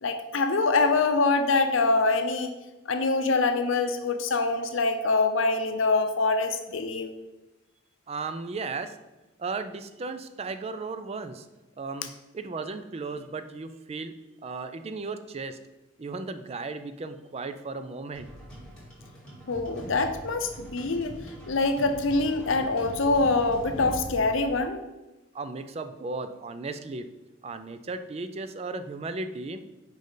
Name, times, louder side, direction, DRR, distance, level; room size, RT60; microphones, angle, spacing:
voice 1, 0.0-2.5 2.9-7.1 19.5-21.2 21.5-24.8, left 3 dB, 70° left, 7 dB, 0.6 m, -24 dB
voice 2, 8.1-9.0 9.4-11.5 11.8-14.1 14.4-15.6 16.0-18.3 25.3-27.1 27.4-29.6, right 3 dB, 30° right, 10 dB, 0.4 m, -35 dB
sound 1, 18.1-24.6, equal, 5° left, 1.8 m, -42 dB
5.2 x 5.2 x 3.9 m, 1.0 s
head